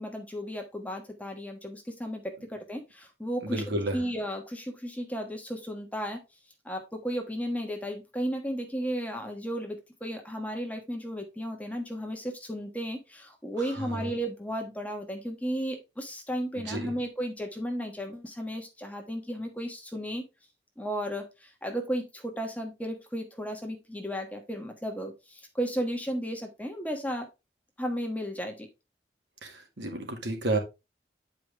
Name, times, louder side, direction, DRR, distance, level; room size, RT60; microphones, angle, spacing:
voice 1, 0.0-3.6 3.9-6.2 6.6-20.2 20.8-27.3 27.8-28.7, equal, 10° left, 3 dB, 1.3 m, -34 dB
voice 2, 3.4-4.0 13.9-14.0 16.7-16.9 29.4-30.6, right 2 dB, 75° right, 3 dB, 2.1 m, -31 dB
8.7 x 4.9 x 3.5 m, 0.25 s
head